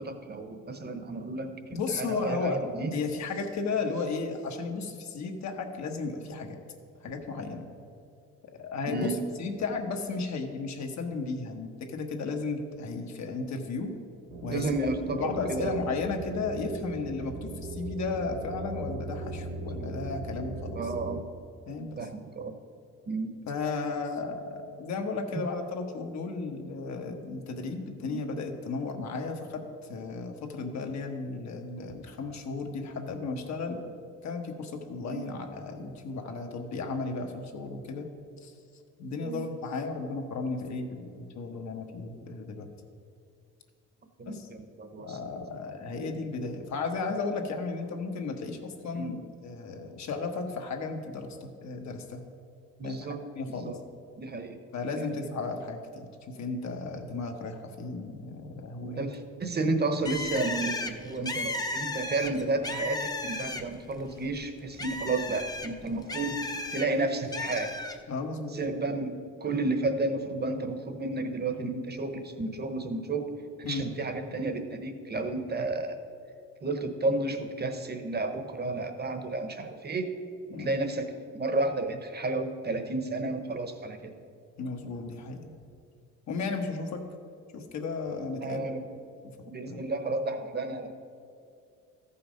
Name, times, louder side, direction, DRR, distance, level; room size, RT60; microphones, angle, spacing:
voice 1, 0.0-2.9 8.9-9.1 14.5-15.8 19.8-19.9 20.7-21.2 22.0-22.5 23.1-23.3 28.1-28.2 35.1-35.2 39.2-39.4 44.2-45.2 48.9-49.1 52.8-53.2 53.5-53.8 54.2-54.6 58.8-66.4 66.7-67.7 68.5-73.3 73.7-76.0 76.6-80.1 80.6-84.1 88.4-88.8 89.5-90.9, right 2 dB, 35° right, 7 dB, 1.0 m, -32 dB
voice 2, 1.7-2.6 2.9-6.6 7.0-7.7 8.6-9.1 9.4-14.0 14.4-14.7 15.1-20.9 21.7-22.0 23.5-29.6 29.9-33.8 34.2-38.1 38.4-38.5 39.0-42.7 44.3-44.5 45.0-52.2 52.8-53.0 53.3-53.7 54.7-59.1 68.1-68.6 73.6-73.8 80.5-80.7 84.6-85.5 86.3-87.0 87.5-88.9 89.7-89.8, left 4 dB, 65° left, 3 dB, 1.2 m, -34 dB
sound 1, 14.3-21.2, right 3 dB, 80° right, 1.0 m, -38 dB
Bird, 60.0-63.9 64.2-66.9 67.3-68.0, left 2 dB, 15° left, 0.7 m, -34 dB
13.5 x 5.7 x 5.2 m, 2.5 s
cardioid pair, 90°, 30 cm